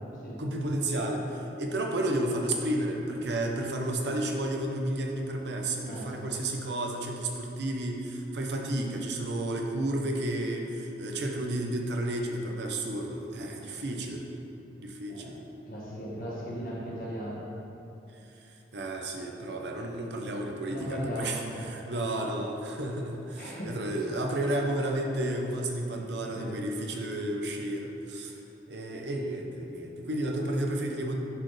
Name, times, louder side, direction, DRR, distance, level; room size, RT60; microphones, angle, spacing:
voice 1, 0.4-14.2 14.8-15.4 18.4-18.5 18.7-28.3 28.7-31.2, right 1 dB, 75° right, 1 dB, 0.7 m, -32 dB
voice 2, 5.8-6.3 15.1-15.3 15.7-17.5 20.7-21.9 23.4-24.0 25.9-26.6, equal, 50° left, -6 dB, 1.4 m, -38 dB
10.0 x 4.2 x 3.3 m, 2.9 s
head